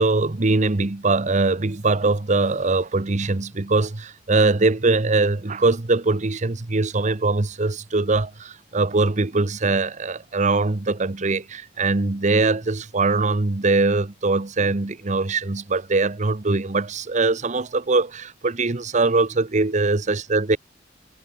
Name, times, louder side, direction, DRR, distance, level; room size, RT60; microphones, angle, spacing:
voice 1, 0.0-20.6, right 3 dB, 40° right, 0.9 m, -22 dB
head